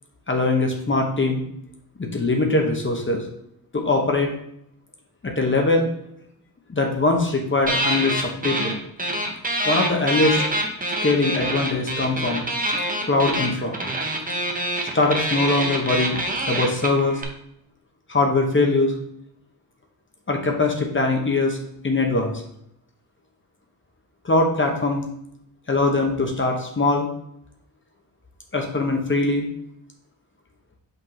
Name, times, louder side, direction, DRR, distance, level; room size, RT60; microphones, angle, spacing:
voice 1, 0.3-1.4 2.0-3.2 3.7-4.3 5.2-5.9 6.7-8.8 9.6-10.4 11.0-12.4 13.1-13.8 14.9-16.2 16.5-17.2 18.1-18.9 20.3-21.6 21.8-22.4 24.2-25.0 25.7-27.1 28.5-29.5, left 2 dB, 35° left, 2 dB, 1.0 m, -21 dB
sound 1, 7.7-8.7 9.0-17.2, right 1 dB, 25° right, 0.9 m, -25 dB
5.5 x 3.5 x 5.6 m, 0.74 s
wide cardioid pair, 135°, 35 cm